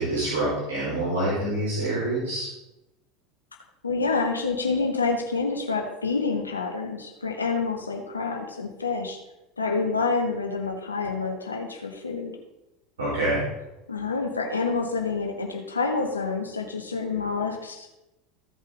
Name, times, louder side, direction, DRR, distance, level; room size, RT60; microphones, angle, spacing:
voice 1, 0.0-2.5 13.0-13.4, right 1 dB, 75° right, -8 dB, 4.1 m, -26 dB
voice 2, 3.8-9.2 9.6-12.3 13.9-18.1, left 4 dB, 90° left, 2 dB, 1.3 m, -28 dB
15.0 x 5.6 x 3.8 m, 0.95 s
figure-of-eight pair, 75°, 0 cm